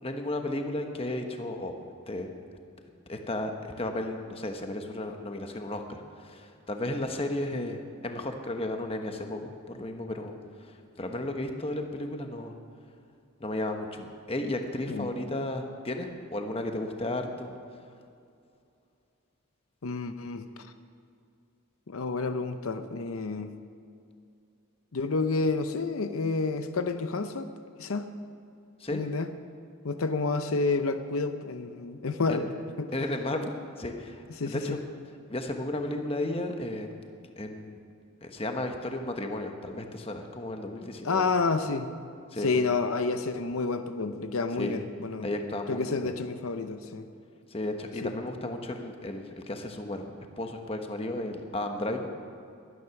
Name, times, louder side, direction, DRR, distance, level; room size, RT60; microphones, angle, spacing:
voice 1, 0.0-1.8 2.1-2.3 3.1-12.5 13.4-17.6 28.8-29.0 32.3-32.5 32.9-34.8 35.3-36.9 37.4-37.8 38.2-41.2 42.3-42.5 44.6-44.7 45.2-46.1 47.5-52.1, left 1 dB, 25° left, 4 dB, 1.1 m, -34 dB
voice 2, 19.8-20.7 21.9-23.5 24.9-27.5 27.8-28.1 28.9-29.3 29.8-32.9 34.4-34.8 41.0-41.9 42.4-45.3 45.7-47.1 48.0-48.1, left 3 dB, 80° left, 9 dB, 0.7 m, -29 dB
22.0 x 9.7 x 5.9 m, 2.4 s
head